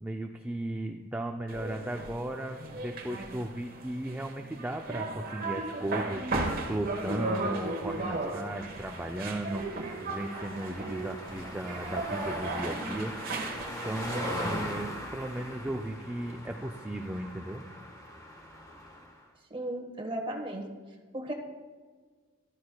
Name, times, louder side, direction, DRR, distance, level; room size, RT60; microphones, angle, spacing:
voice 1, 0.0-6.3 6.7-9.6 10.0-13.1 13.8-17.6, right 1 dB, 10° right, 2 dB, 0.3 m, -36 dB
sound 1, 1.5-14.7, right 2 dB, 40° right, 1.2 m, -36 dB
sound 2, 6.3-19.3, left 1 dB, 15° left, 1.2 m, -42 dB
voice 2, 19.5-20.7 21.1-21.3, right 1 dB, 25° right, 2 dB, 1.3 m, -35 dB
14.0 x 12.5 x 2.3 m, 1.5 s
head